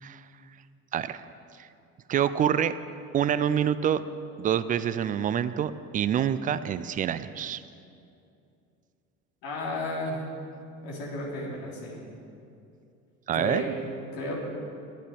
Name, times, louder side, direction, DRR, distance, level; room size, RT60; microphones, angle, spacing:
voice 1, 2.1-2.7 3.1-4.0 4.4-7.6 13.3-13.7, right 9 dB, 20° right, 14 dB, 0.3 m, -26 dB
voice 2, 9.4-10.2 10.8-12.0 13.3-14.4, left 1 dB, 55° left, -3 dB, 3.7 m, -33 dB
12.0 x 11.0 x 7.9 m, 2.6 s
figure-of-eight pair, 60°, 43 cm